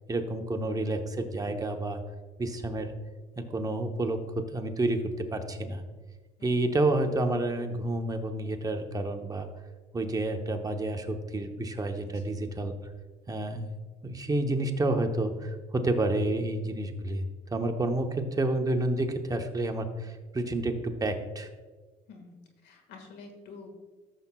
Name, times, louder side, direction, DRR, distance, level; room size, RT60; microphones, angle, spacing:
voice 1, 0.1-2.0 2.4-2.9 3.4-5.8 6.4-9.5 9.9-12.7 13.3-13.7 14.0-21.5, right 2 dB, 20° right, 5 dB, 0.8 m, -29 dB
voice 2, 6.4-6.7 12.0-12.4 22.1-23.8, left 4 dB, 85° left, 5 dB, 1.6 m, -49 dB
13.5 x 7.0 x 2.3 m, 1.3 s
cardioid pair, 110°, 17 cm